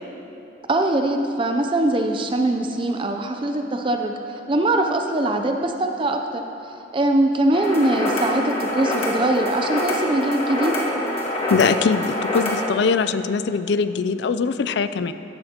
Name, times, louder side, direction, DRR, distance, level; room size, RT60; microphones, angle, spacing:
voice 1, 0.7-6.4 6.9-10.7, right 1 dB, 25° right, 5 dB, 0.4 m, -22 dB
sound 1, 7.5-12.7, left 1 dB, 30° left, 1.4 m, -25 dB
voice 2, 11.5-15.1, left 5 dB, 60° left, 12 dB, 0.3 m, -22 dB
14.5 x 11.0 x 2.9 m, 2.8 s
head